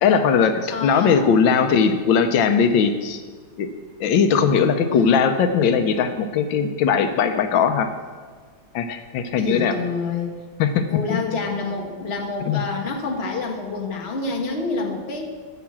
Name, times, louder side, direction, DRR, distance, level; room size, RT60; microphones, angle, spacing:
voice 1, 0.0-3.2 3.6-3.7 4.0-7.9 8.7-9.8 10.6-10.9 12.5-12.6, left 6 dB, 90° left, 8 dB, 1.5 m, -19 dB
voice 2, 0.7-1.3 4.9-5.3 9.4-10.4 10.9-15.3, left 4 dB, 35° left, 1 dB, 1.5 m, -28 dB
13.5 x 5.9 x 7.4 m, 1.5 s
omnidirectional pair, 2.0 m